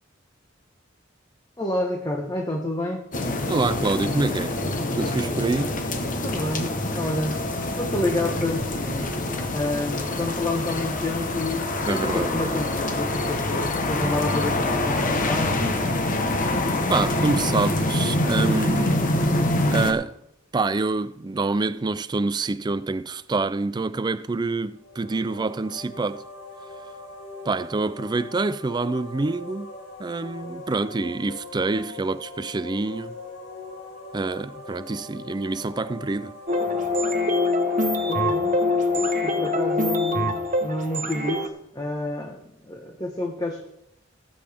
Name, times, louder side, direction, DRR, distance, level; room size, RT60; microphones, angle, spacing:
voice 1, 1.6-3.1 6.2-7.4 7.8-16.0 38.1-38.5 38.9-43.7, left 1 dB, 20° left, 1.2 m, -29 dB
sound 1, 3.1-19.9, left 2 dB, 40° left, 1.1 m, -25 dB
voice 2, 3.5-4.5 5.0-5.8 11.9-12.3 16.9-19.0 19.7-20.1 20.5-26.2 27.5-29.7 30.0-33.1 34.1-36.3, right 3 dB, 20° right, 0.4 m, -26 dB
sound 2, 24.7-39.4, left 2 dB, 70° left, 2.9 m, -42 dB
sound 3, 36.5-41.5, left 2 dB, 40° right, 1.1 m, -24 dB
18.0 x 8.7 x 3.5 m
head